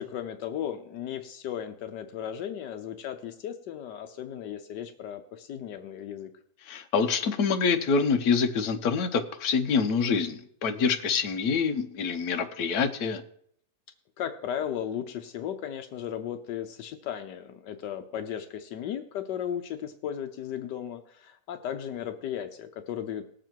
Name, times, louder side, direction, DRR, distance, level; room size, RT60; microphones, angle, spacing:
voice 1, 0.0-6.3 14.2-23.3, left 9 dB, 80° left, 8 dB, 1.4 m, -35 dB
voice 2, 6.7-13.2, left 5 dB, 65° left, 6 dB, 1.4 m, -26 dB
19.0 x 7.5 x 4.6 m, 0.68 s
omnidirectional pair, 1.8 m